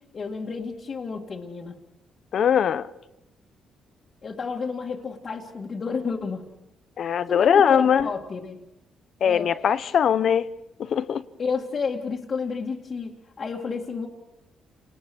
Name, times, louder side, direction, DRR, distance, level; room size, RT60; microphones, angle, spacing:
voice 1, 0.1-1.8 4.2-6.4 7.3-8.6 9.2-9.7 11.4-14.1, left 5 dB, 45° left, 2.3 m, -31 dB
voice 2, 2.3-2.9 7.0-8.1 9.2-10.5 10.8-11.2, left 8 dB, 60° left, 1.0 m, -20 dB
29.0 x 20.0 x 6.4 m
cardioid pair, 90°, 0 cm